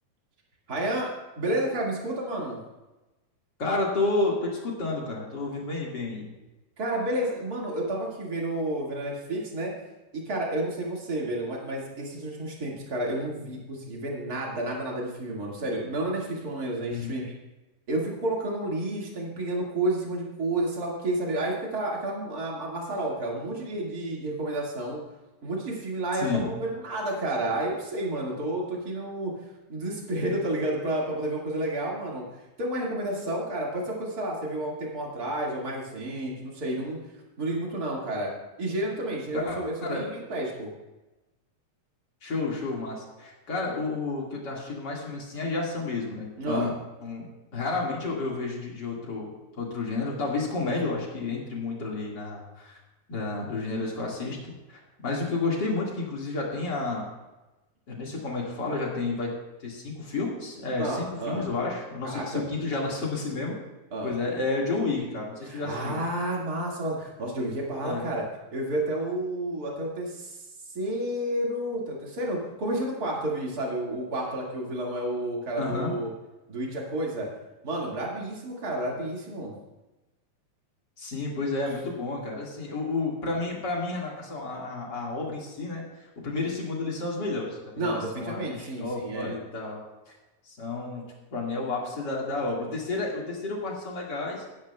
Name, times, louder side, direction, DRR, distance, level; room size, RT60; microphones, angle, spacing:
voice 1, 0.7-1.1 1.3-2.6 6.8-9.7 10.1-17.3 17.9-25.0 25.4-29.3 29.7-32.2 32.6-37.0 37.4-38.3 38.6-40.7 46.4-46.7 60.8-61.4 62.0-62.4 63.9-64.1 65.4-68.2 68.5-70.4 70.7-76.1 76.5-77.3 77.6-79.5 87.8-89.3, right 1 dB, 35° right, -3 dB, 1.7 m, -30 dB
voice 2, 3.6-6.3 16.9-17.1 26.1-26.5 39.3-40.1 42.2-46.7 47.0-49.3 49.6-52.8 53.1-54.4 54.7-57.1 57.9-59.3 59.6-63.5 64.0-66.0 67.8-68.0 75.6-75.9 81.0-85.8 86.2-87.6 87.8-89.8 90.5-91.1 91.3-94.4, left 3 dB, 40° left, -3 dB, 1.8 m, -31 dB
17.5 x 10.5 x 2.3 m, 1.1 s
omnidirectional pair, 4.4 m